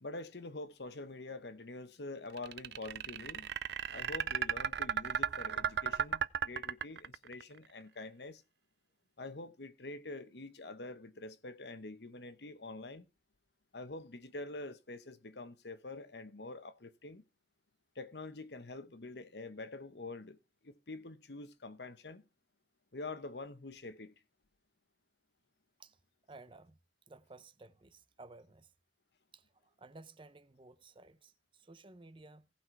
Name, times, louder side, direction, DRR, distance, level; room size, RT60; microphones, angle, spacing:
voice 1, 0.0-3.5 3.9-8.4 9.2-13.1 13.7-17.2 17.9-20.4 20.6-22.2 22.9-24.1, left 2 dB, 70° left, 1.1 m, -46 dB
sound 1, 2.4-7.4, right 7 dB, 65° right, 0.5 m, -34 dB
voice 2, 26.3-26.8 27.1-28.7 29.3-32.5, right 3 dB, 30° right, 0.7 m, -56 dB
17.5 x 5.9 x 4.6 m
head